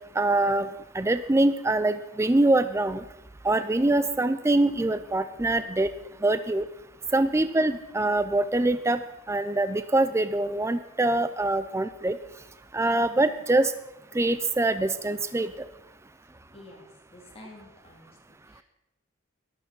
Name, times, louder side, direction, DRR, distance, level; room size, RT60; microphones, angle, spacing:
voice 1, 0.2-0.7 0.9-3.0 3.4-5.9 6.2-6.6 7.1-9.0 9.3-12.2 12.7-13.7 14.1-15.5, right 2 dB, 15° right, 12 dB, 0.4 m, -24 dB
voice 2, 16.5-18.6, left 1 dB, 30° left, -1 dB, 3.4 m, -50 dB
13.5 x 11.5 x 5.4 m, 0.93 s
head